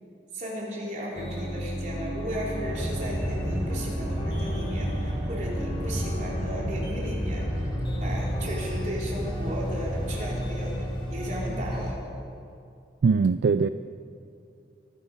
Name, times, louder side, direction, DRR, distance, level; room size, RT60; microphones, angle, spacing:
voice 1, 0.3-7.5 8.0-12.0, equal, 45° right, -4 dB, 3.6 m, -35 dB
sound 1, 1.1-11.9, equal, 30° left, 3.1 m, -33 dB
sound 2, 2.7-10.2, equal, 10° right, 2.4 m, -33 dB
voice 2, 13.0-13.7, right 5 dB, 70° right, 12 dB, 0.3 m, -21 dB
23.5 x 10.0 x 5.5 m, 2.5 s
head